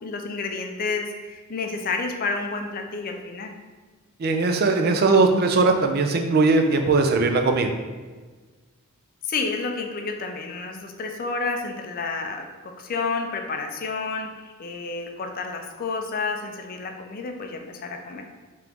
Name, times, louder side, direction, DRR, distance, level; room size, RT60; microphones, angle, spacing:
voice 1, 0.0-3.6 9.2-18.3, left 4 dB, 40° left, 4 dB, 0.4 m, -30 dB
voice 2, 4.2-7.7, right 3 dB, 45° right, 5 dB, 0.4 m, -19 dB
3.7 x 2.9 x 3.5 m, 1.4 s
head